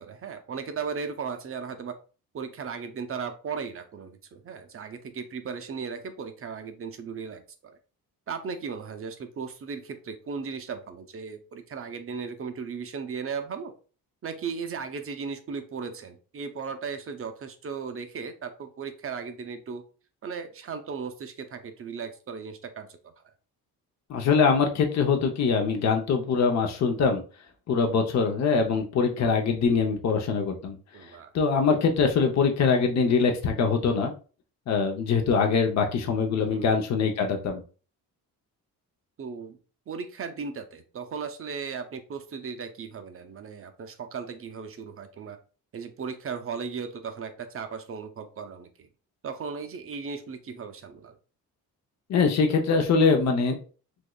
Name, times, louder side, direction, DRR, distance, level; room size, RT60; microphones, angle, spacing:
voice 1, 0.0-2.0 2.3-7.8 8.3-13.7 14.2-19.8 20.2-23.1 30.9-31.3 36.5-36.8 39.2-39.6 39.9-45.4 45.7-48.9 49.2-51.1, right 5 dB, 35° right, 8 dB, 0.5 m, -36 dB
voice 2, 24.1-27.2 27.7-30.8 31.3-34.1 34.7-37.6 52.1-53.6, left 5 dB, 45° left, 3 dB, 0.7 m, -23 dB
3.5 x 3.0 x 2.2 m, 0.37 s
cardioid pair, 110°, 38 cm